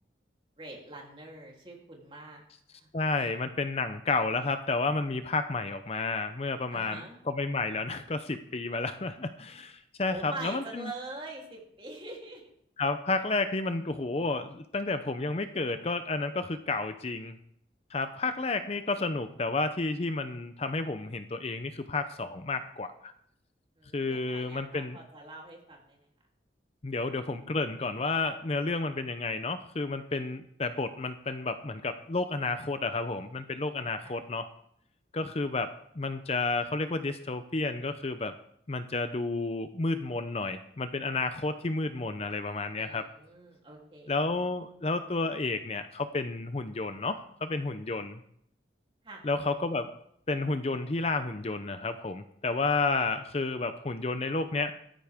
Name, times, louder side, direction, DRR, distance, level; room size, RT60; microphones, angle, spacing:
voice 1, 0.6-2.4 2.7-2.9 3.2-3.3 6.7-7.1 10.1-12.4 23.8-26.0 34.0-34.2 42.8-44.1 49.0-49.2, right 2 dB, 30° right, -1 dB, 3.3 m, -44 dB
voice 2, 2.9-10.9 12.8-17.4 17.9-23.1 23.9-25.0 26.8-34.5 35.1-38.3 38.7-43.1 44.1-48.2 49.2-49.9 50.3-54.7, left 3 dB, 35° left, 9 dB, 0.6 m, -31 dB
15.5 x 13.5 x 3.6 m, 0.70 s
head